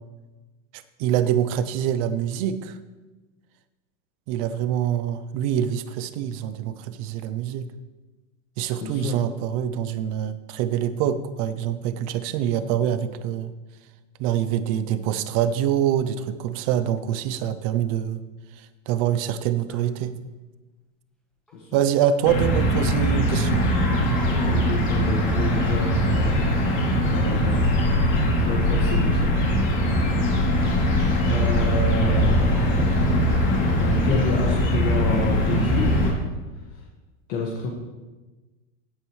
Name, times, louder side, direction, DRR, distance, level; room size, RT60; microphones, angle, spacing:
voice 1, 1.0-2.8 4.3-7.6 8.6-13.5 14.2-18.2 18.9-20.1 21.7-23.6, right 10 dB, 30° right, 12 dB, 0.4 m, -25 dB
voice 2, 8.8-9.2 21.5-21.7 24.4-27.9 28.4-29.6 31.2-33.2 33.8-36.1 36.7-36.8 37.3-37.7, left 4 dB, 50° left, -2 dB, 1.7 m, -29 dB
Crying sobbing, 17.1-17.2 19.7-19.9 21.5-21.6 22.1-22.2 22.4-22.5 23.5-24.6 25.6-25.9 26.5-26.6, right 1 dB, ahead, 1.1 m, -41 dB
sound 1, 22.2-36.1, equal, 30° left, 2.9 m, -21 dB
15.5 x 8.6 x 3.1 m, 1.2 s
supercardioid pair, 165°, 39 cm